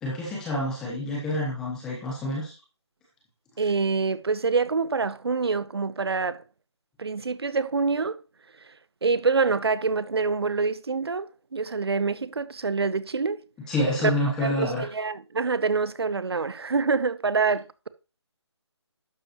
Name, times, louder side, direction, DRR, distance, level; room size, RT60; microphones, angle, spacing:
voice 1, 0.0-2.5 13.7-14.9, left 1 dB, 5° left, 1.0 m, -28 dB
voice 2, 3.6-6.4 7.0-8.2 9.0-13.4 14.0-14.1 14.4-17.9, right 4 dB, 60° right, 0.8 m, -26 dB
11.5 x 7.6 x 3.0 m
figure-of-eight pair, 175°, 15 cm